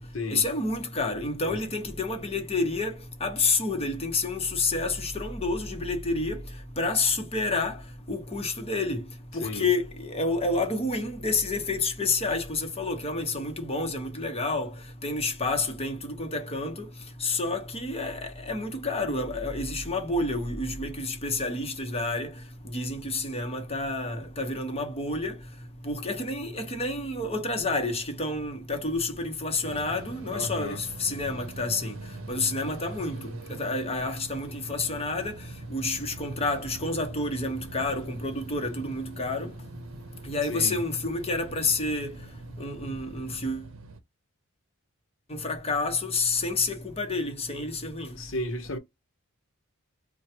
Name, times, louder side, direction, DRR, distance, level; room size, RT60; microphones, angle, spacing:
voice 1, 0.3-6.4 6.8-7.8 8.1-9.0 9.3-14.7 15.0-16.9 17.2-22.3 22.6-25.4 25.8-31.9 32.3-33.2 33.5-35.4 35.7-39.5 40.2-42.1 42.6-43.6 45.3-48.1, left 3 dB, 30° left, 0.9 m, -29 dB
sound 1, 29.6-44.0, right 2 dB, 70° right, 0.7 m, -44 dB
voice 2, 30.3-30.8 40.5-40.8 48.1-48.8, left 2 dB, 65° left, 0.9 m, -33 dB
4.5 x 2.3 x 2.9 m
head